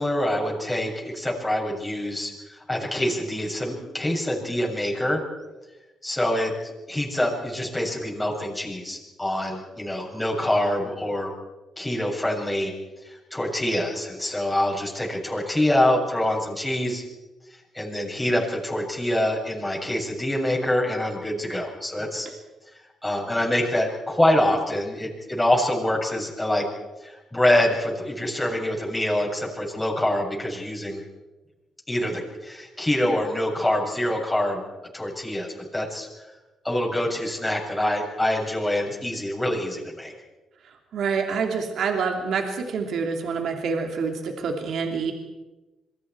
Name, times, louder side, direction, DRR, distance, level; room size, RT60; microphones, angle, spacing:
voice 1, 0.0-5.2 6.0-6.5 6.9-11.3 11.8-12.7 13.0-17.0 17.7-22.3 23.0-26.7 27.0-31.0 31.9-34.6 34.9-36.1 36.6-40.1, left 1 dB, 10° left, -2 dB, 7.2 m, -25 dB
voice 2, 40.9-45.1, right 5 dB, 70° right, 3 dB, 2.8 m, -27 dB
27.5 x 23.0 x 4.7 m, 1.1 s
cardioid pair, 90°, 0 cm